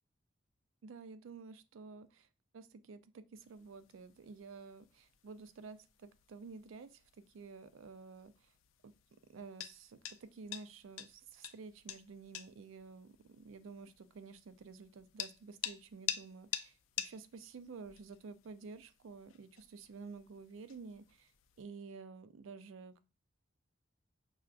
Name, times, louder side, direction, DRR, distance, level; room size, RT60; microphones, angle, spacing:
voice 1, 0.8-2.3 2.5-8.5 8.8-8.9 9.3-21.3 21.6-23.0, right 4 dB, 85° right, 12 dB, 0.4 m, -51 dB
sound 1, 3.3-21.6, left 11 dB, 85° left, 0.4 m, -49 dB
5.6 x 2.3 x 2.4 m, 0.33 s
head